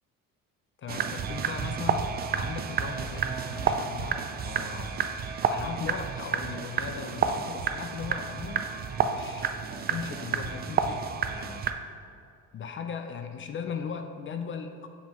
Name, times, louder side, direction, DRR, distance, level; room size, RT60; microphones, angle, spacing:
voice 1, 0.8-5.1 5.5-8.6 9.0-11.6 12.5-14.9, left 6 dB, 35° left, 7 dB, 0.4 m, -38 dB
sound 1, 0.9-11.7, right 6 dB, 30° right, 0.3 m, -30 dB
7.2 x 5.1 x 3.1 m, 2.4 s
cardioid pair, 115°, 33 cm